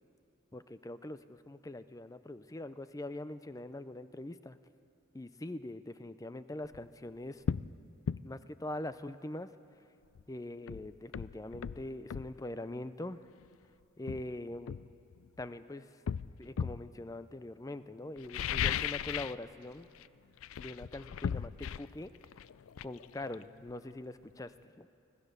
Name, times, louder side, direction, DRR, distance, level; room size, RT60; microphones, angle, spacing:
voice 1, 0.5-4.6 5.1-7.4 8.2-9.5 10.3-13.2 14.0-14.8 15.4-15.9 16.4-19.9 20.6-22.1 22.8-24.9, left 1 dB, 15° left, 13 dB, 0.4 m, -43 dB
sound 1, 6.6-6.8 7.4-7.7 8.1-8.2 10.1-10.2 10.7-12.3 13.4-13.5 14.1-15.5 16.1-16.9 18.2-19.4 19.7-20.1 20.4-23.9 24.2-24.3, left 8 dB, 80° left, 0.4 m, -37 dB
25.5 x 15.0 x 6.7 m, 2.6 s
head